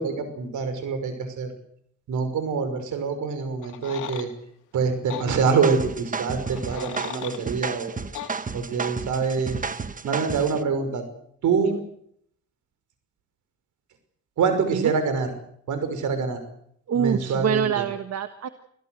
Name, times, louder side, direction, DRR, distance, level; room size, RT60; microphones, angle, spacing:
voice 1, 0.0-1.5 2.1-4.3 4.7-7.9 8.5-9.6 10.0-11.0 11.4-11.8 14.4-15.3 15.7-16.4 16.9-17.8, right 5 dB, 75° right, 9 dB, 5.8 m, -25 dB
sound 1, 3.6-4.3 5.1-5.3 6.4-7.4 8.1-8.3, left 12 dB, 90° left, 2.4 m, -36 dB
sound 2, 5.3-10.6, right 5 dB, 25° right, 1.3 m, -32 dB
voice 2, 16.9-18.5, right 8 dB, 55° right, 10 dB, 1.5 m, -25 dB
25.5 x 16.5 x 8.0 m, 0.68 s
cardioid pair, 90°, 30 cm